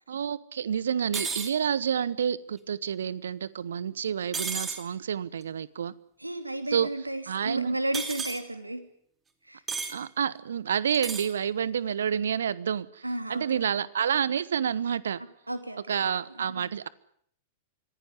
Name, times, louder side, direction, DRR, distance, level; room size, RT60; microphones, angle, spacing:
voice 1, 0.1-5.9 6.7-6.9 7.3-7.7 9.9-13.0 13.3-15.2 15.9-16.9, right 8 dB, 65° right, 20 dB, 1.0 m, -29 dB
sound 1, 1.1-1.5 4.3-4.8 7.9-8.4 9.7-9.9 10.9-11.3, right 4 dB, 15° right, 3.0 m, -32 dB
voice 2, 6.2-8.8 9.4-9.6 13.0-13.9 15.5-16.7, right 1 dB, 85° right, 9 dB, 2.8 m, -33 dB
25.5 x 16.0 x 9.8 m, 0.66 s
figure-of-eight pair, 95°, 0 cm